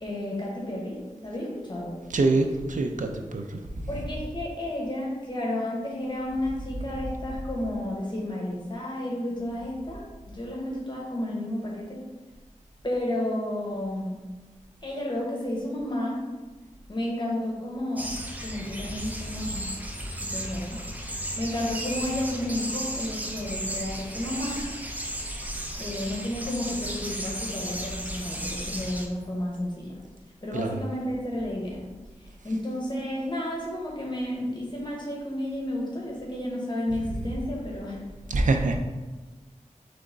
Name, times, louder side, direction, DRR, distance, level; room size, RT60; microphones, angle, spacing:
voice 1, 0.0-2.0 3.9-12.0 12.8-14.1 14.8-16.2 16.9-18.1 18.4-19.7 20.2-20.8 21.4-24.6 25.8-30.0 30.4-31.9 32.4-38.0, left 1 dB, 35° left, -3 dB, 1.2 m, -32 dB
voice 2, 2.1-3.6 30.5-30.8 38.3-38.8, right 2 dB, 85° right, 4 dB, 0.5 m, -25 dB
sound 1, 18.0-29.1, right 1 dB, 10° right, 0.6 m, -34 dB
3.9 x 3.4 x 3.8 m, 1.2 s
wide cardioid pair, 65°, 13 cm